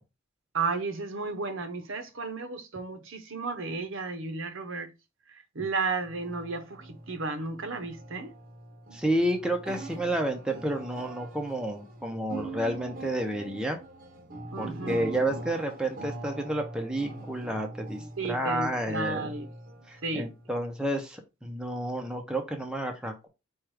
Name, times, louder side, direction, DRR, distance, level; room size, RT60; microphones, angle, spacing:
voice 1, 0.5-4.9 5.3-8.3 14.5-15.1 18.2-19.5 20.0-20.3, right 3 dB, 70° right, 0.8 m, -33 dB
sound 1, 6.0-20.7, right 2 dB, 40° right, 0.7 m, -43 dB
voice 2, 8.9-13.8 14.6-19.3 19.9-23.3, right 1 dB, 5° right, 0.5 m, -30 dB
4.5 x 2.4 x 4.7 m
head